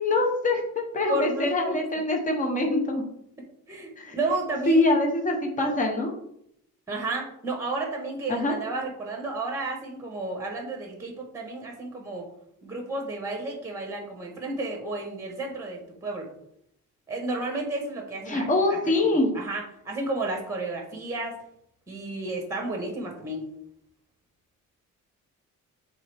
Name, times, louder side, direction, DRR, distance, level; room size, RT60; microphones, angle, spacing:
voice 1, 0.0-3.0 4.0-4.2 4.7-6.1 8.3-8.6 18.3-19.3, left 2 dB, 25° left, 2 dB, 1.1 m, -24 dB
voice 2, 1.1-1.8 3.7-4.8 6.9-12.3 12.6-16.3 17.1-18.8 19.1-21.4 21.9-23.4, right 2 dB, 10° right, 1 dB, 1.3 m, -32 dB
8.4 x 3.6 x 3.5 m, 0.73 s
cardioid pair, 155°, 31 cm